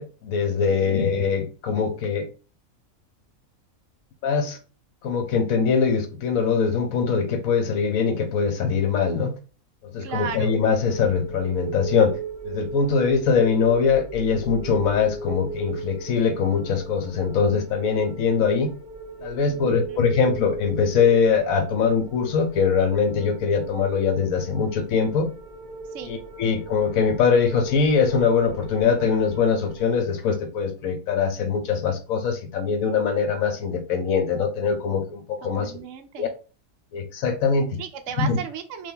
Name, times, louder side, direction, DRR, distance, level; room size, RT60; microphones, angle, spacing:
voice 1, 0.0-2.3 4.2-4.6 5.0-9.3 9.8-12.2 12.4-18.7 19.2-25.3 26.0-35.7 36.2-36.3 36.9-37.8 38.2-38.4, left 6 dB, 75° left, 1.1 m, -22 dB
voice 2, 10.0-10.5 19.5-20.0 25.9-26.1 35.4-36.3 37.8-38.9, right 7 dB, 70° right, 0.9 m, -35 dB
sound 1, 10.1-30.0, right 4 dB, 35° right, 0.9 m, -38 dB
3.5 x 2.5 x 3.7 m
omnidirectional pair, 1.5 m